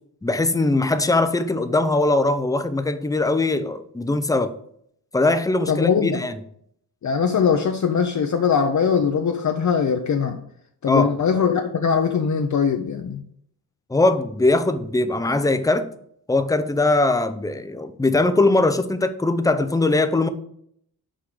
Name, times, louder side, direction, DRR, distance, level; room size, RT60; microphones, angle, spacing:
voice 1, 0.2-4.5 5.1-6.3 10.9-11.1 13.9-15.9 16.3-20.3, left 2 dB, 10° left, 11 dB, 0.5 m, -21 dB
voice 2, 5.7-6.2 7.0-10.4 10.8-13.2, left 6 dB, 45° left, 5 dB, 0.7 m, -21 dB
6.1 x 4.9 x 6.1 m, 0.67 s
wide cardioid pair, 130°, 39 cm